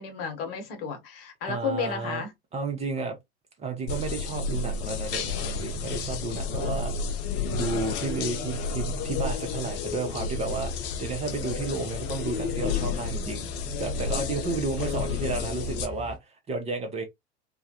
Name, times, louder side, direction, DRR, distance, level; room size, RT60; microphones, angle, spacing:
voice 1, 0.0-2.3 12.9-13.5, left 5 dB, 60° left, 1.0 m, -33 dB
voice 2, 1.5-2.2 2.5-3.2 3.6-6.9 7.5-13.5 13.8-16.2 16.5-17.0, right 3 dB, 20° right, 0.6 m, -32 dB
sound 1, 3.9-15.9, left 4 dB, 40° left, 0.5 m, -31 dB
sound 2, 4.8-16.2, left 1 dB, 10° left, 1.2 m, -43 dB
2.3 x 2.1 x 2.7 m
figure-of-eight pair, 90°, 33 cm